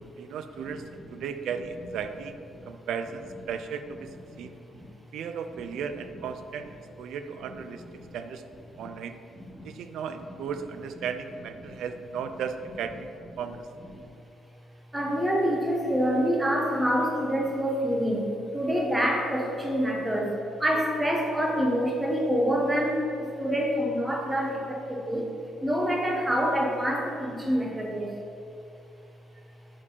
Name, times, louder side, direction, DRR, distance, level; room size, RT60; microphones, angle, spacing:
voice 1, 0.2-2.4 2.7-4.1 4.4-4.5 5.1-7.8 8.1-8.5 8.8-9.2 9.6-13.1 13.4-13.6, right 6 dB, 80° right, 9 dB, 0.4 m, -35 dB
voice 2, 9.4-9.7 11.6-11.7 13.9-14.0 14.9-25.2 25.6-28.2, equal, 10° right, -2 dB, 1.2 m, -27 dB
5.0 x 4.2 x 5.4 m, 2.6 s
cardioid pair, 90°, 0 cm